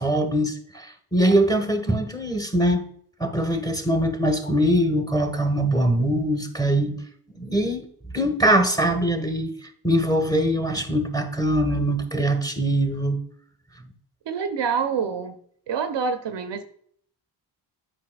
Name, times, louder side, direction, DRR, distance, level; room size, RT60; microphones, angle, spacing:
voice 1, 0.0-2.8 3.2-7.0 7.3-7.9 8.1-13.2, right 1 dB, 10° left, 6 dB, 1.5 m, -22 dB
voice 2, 14.3-15.4 15.7-16.6, right 6 dB, 60° right, 8 dB, 0.8 m, -26 dB
8.5 x 5.5 x 2.3 m, 0.63 s
supercardioid pair, 45°, 48 cm